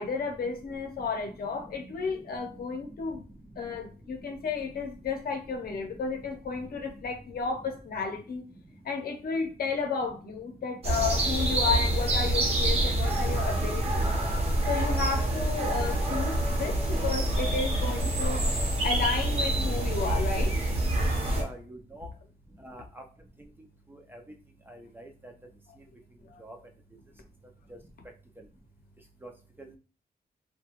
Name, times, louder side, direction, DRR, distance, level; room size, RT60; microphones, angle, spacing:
voice 1, 0.0-3.2 3.6-8.4 8.8-14.1 14.6-18.4 18.8-20.5 26.2-26.4, left 5 dB, 65° left, 4 dB, 0.7 m, -32 dB
sound 1, 10.8-21.4, right 1 dB, 40° right, 0.8 m, -27 dB
voice 2, 21.4-22.1 22.6-23.0 24.1-24.2 24.7-25.3 26.4-26.6 29.2-29.3 29.6-29.7, right 1 dB, 15° right, 2 dB, 0.4 m, -45 dB
2.8 x 2.2 x 2.8 m, 0.37 s
wide cardioid pair, 145°, 17 cm